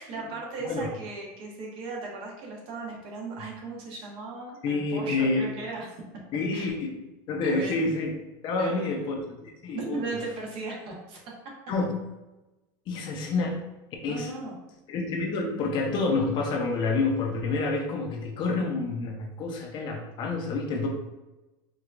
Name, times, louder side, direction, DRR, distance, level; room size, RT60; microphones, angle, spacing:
voice 1, 0.0-5.9 6.5-6.7 7.4-7.9 8.6-9.1 9.7-11.2 14.0-14.5, right 3 dB, 50° right, -2 dB, 1.2 m, -37 dB
voice 2, 4.6-5.6 6.3-7.0 7.3-8.1 8.4-10.0 11.7-12.1 12.9-13.7 14.0-14.3 14.9-20.9, left 3 dB, 45° left, 1 dB, 0.7 m, -28 dB
4.6 x 2.7 x 2.5 m, 1.1 s
supercardioid pair, 130°, 11 cm